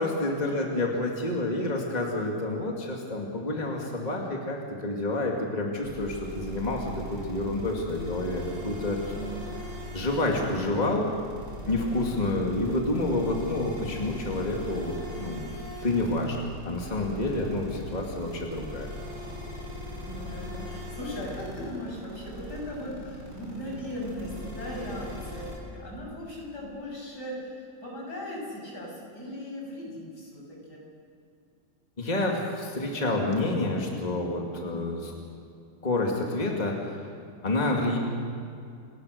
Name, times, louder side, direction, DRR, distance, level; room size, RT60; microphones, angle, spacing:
voice 1, 0.0-9.1 9.9-11.1 11.7-15.4 15.8-18.9 32.0-35.1 35.8-37.0 37.4-38.0, left 2 dB, 25° left, 0 dB, 2.4 m, -29 dB
sound 1, 5.8-25.6, equal, 70° right, 6.9 m, -39 dB
voice 2, 9.1-9.4 11.6-12.4 17.1-17.6 20.0-30.8 34.6-34.9, equal, 75° left, -2 dB, 7.5 m, -38 dB
29.5 x 18.5 x 6.6 m, 2.4 s
omnidirectional pair, 1.8 m